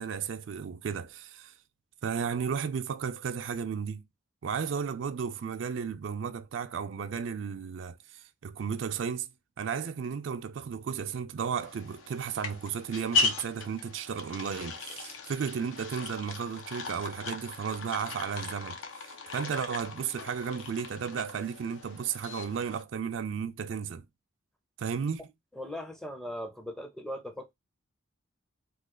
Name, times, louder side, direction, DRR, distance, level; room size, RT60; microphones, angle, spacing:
voice 1, 0.0-1.5 2.0-4.0 4.4-9.3 9.6-24.1 24.8-25.2, right 6 dB, 65° right, 0.4 m, -34 dB
sound 1, 11.6-22.8, left 3 dB, 75° left, 0.6 m, -37 dB
voice 2, 25.5-27.5, left 1 dB, ahead, 0.5 m, -39 dB
3.2 x 2.3 x 3.6 m
head